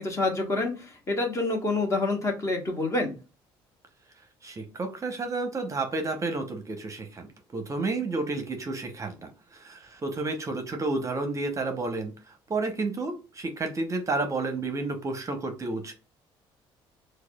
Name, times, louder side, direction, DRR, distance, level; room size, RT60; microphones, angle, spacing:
voice 1, 0.0-3.1, left 2 dB, 30° left, 2 dB, 1.2 m, -27 dB
voice 2, 4.4-15.9, right 3 dB, 30° right, 6 dB, 0.7 m, -31 dB
4.7 x 2.1 x 2.2 m, 0.32 s
supercardioid pair, 85°, 11 cm